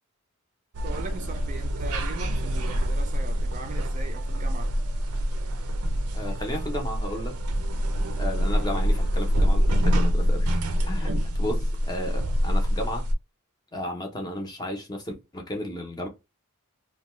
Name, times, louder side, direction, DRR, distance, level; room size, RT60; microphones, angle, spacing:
sound 1, 0.7-13.1, equal, 85° right, 0.5 m, -25 dB
voice 1, 0.8-4.7 8.5-8.7 11.0-11.3, right 3 dB, 35° right, 0.4 m, -40 dB
voice 2, 6.1-7.4 8.2-11.1 11.4-13.1 13.7-16.1, left 1 dB, 20° left, 0.6 m, -34 dB
2.6 x 2.2 x 3.0 m
head